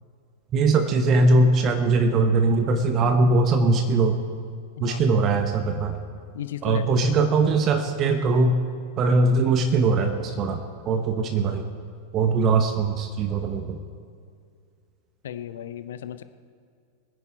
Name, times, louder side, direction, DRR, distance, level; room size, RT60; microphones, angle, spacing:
voice 1, 0.5-4.2 4.8-6.0 6.6-8.6 9.0-11.6 12.1-13.8, right 3 dB, 30° right, 6 dB, 1.1 m, -21 dB
voice 2, 6.3-7.0 15.2-16.2, left 10 dB, 60° left, 12 dB, 0.7 m, -35 dB
23.0 x 10.0 x 4.4 m, 2.3 s
figure-of-eight pair, 90°, 0 cm